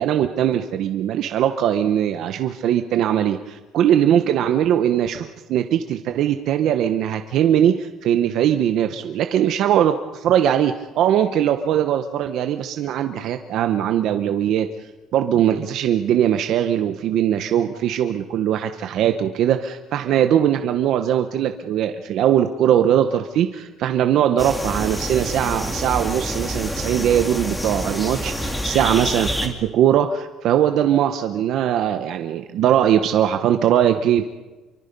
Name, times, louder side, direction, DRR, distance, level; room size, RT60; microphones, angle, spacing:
voice 1, 0.0-14.7 15.1-34.2, right 10 dB, 60° right, 7 dB, 1.0 m, -20 dB
sound 1, 24.4-29.5, equal, 10° left, 2.6 m, -27 dB
28.0 x 24.0 x 5.4 m, 1.2 s
cardioid pair, 155°, 0 cm